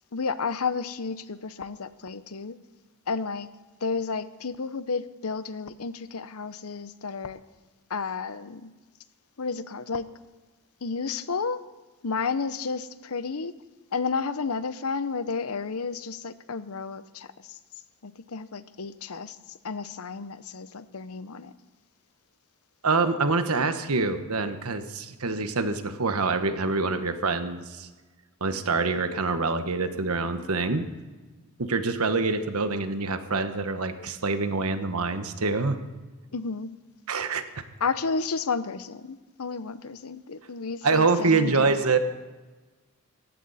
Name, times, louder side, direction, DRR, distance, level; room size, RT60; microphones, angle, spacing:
voice 1, 0.1-2.6 3.1-3.5 3.8-7.4 7.9-8.7 9.4-10.1 10.8-11.6 12.0-13.5 13.9-17.6 18.0-19.4 19.6-21.5 36.3-36.7 37.8-41.9, left 4 dB, 85° left, 14 dB, 0.8 m, -32 dB
voice 2, 22.8-27.9 28.4-30.8 31.6-35.8 37.1-37.4 40.8-42.0, right 3 dB, 85° right, 9 dB, 1.3 m, -25 dB
19.0 x 15.5 x 4.2 m, 1.2 s
head